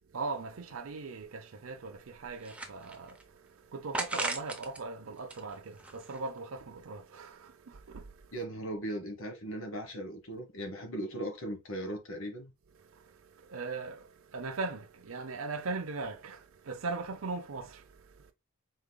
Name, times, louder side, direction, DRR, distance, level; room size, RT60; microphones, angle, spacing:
voice 1, 0.1-8.4 12.7-18.3, right 3 dB, 65° right, 0.6 m, -40 dB
sound 1, 2.0-3.2 3.9-4.8 5.2-6.4, right 2 dB, 5° right, 0.6 m, -38 dB
voice 2, 8.3-12.5, right 1 dB, 65° left, 1.3 m, -38 dB
5.2 x 3.9 x 2.2 m
head